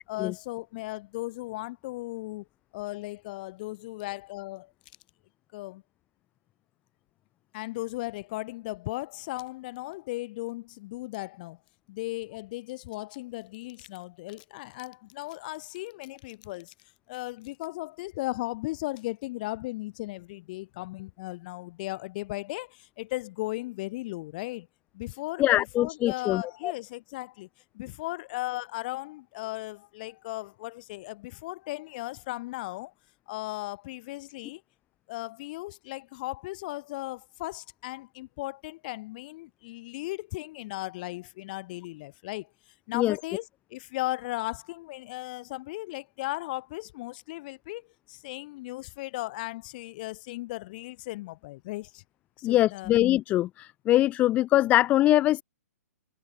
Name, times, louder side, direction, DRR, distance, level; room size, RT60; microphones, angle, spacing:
voice 1, 0.1-2.5 2.7-4.7 5.5-5.8 7.5-11.6 11.9-16.7 17.1-24.7 24.9-27.5 27.7-32.9 33.3-34.6 35.1-42.5 42.9-52.0 52.4-53.0, left 19 dB, 35° left, 5.6 m, -36 dB
voice 2, 25.4-26.7 42.9-43.2 52.4-55.4, left 14 dB, 15° left, 1.1 m, -23 dB
hypercardioid pair, 165°, 9 cm